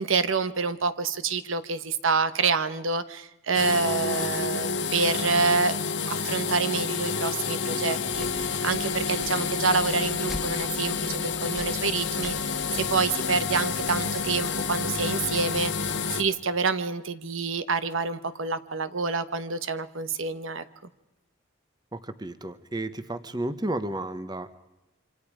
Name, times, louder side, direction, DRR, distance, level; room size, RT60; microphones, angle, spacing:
voice 1, 0.0-5.8 6.1-20.6, right 4 dB, 75° right, 12 dB, 1.1 m, -27 dB
sound 1, 3.5-16.2, left 5 dB, 60° left, 1.2 m, -29 dB
sound 2, 8.1-16.2, equal, ahead, 1.5 m, -45 dB
voice 2, 21.9-24.5, right 1 dB, 20° right, 12 dB, 1.0 m, -32 dB
26.5 x 25.5 x 4.9 m, 1.0 s
head